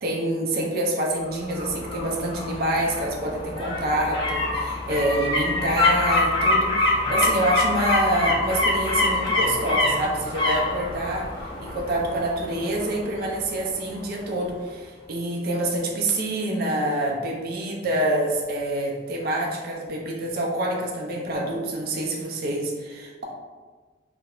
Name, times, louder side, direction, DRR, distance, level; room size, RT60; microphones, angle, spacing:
voice 1, 0.0-23.2, right 1 dB, 55° right, -1 dB, 0.4 m, -26 dB
sound 1, 1.3-14.1 14.4-14.5, left 2 dB, 30° left, 0.4 m, -25 dB
2.3 x 2.0 x 2.9 m, 1.4 s
head